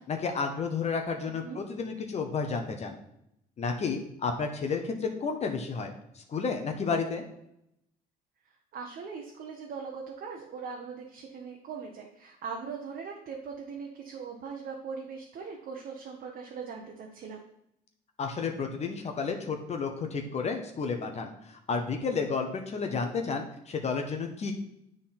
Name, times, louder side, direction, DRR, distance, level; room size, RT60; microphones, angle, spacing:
voice 1, 0.1-3.0 3.6-7.2 18.2-24.5, left 5 dB, 40° left, 4 dB, 1.0 m, -31 dB
voice 2, 1.3-1.6 8.7-17.4, right 5 dB, 60° right, 0 dB, 1.1 m, -40 dB
9.8 x 3.8 x 4.3 m, 0.78 s
cardioid pair, 110°, 17 cm